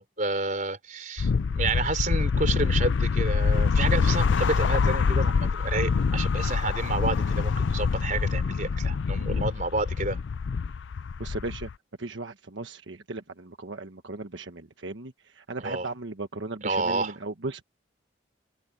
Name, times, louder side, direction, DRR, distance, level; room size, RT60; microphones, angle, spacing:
voice 1, 0.0-10.2 15.6-15.9 16.6-17.1, right 3 dB, 40° right, 4.0 m, -30 dB
sound 1, 1.2-11.7, left 5 dB, 75° left, 0.4 m, -25 dB
voice 2, 11.2-11.7 12.0-17.6, right 2 dB, 80° right, 1.3 m, -36 dB
head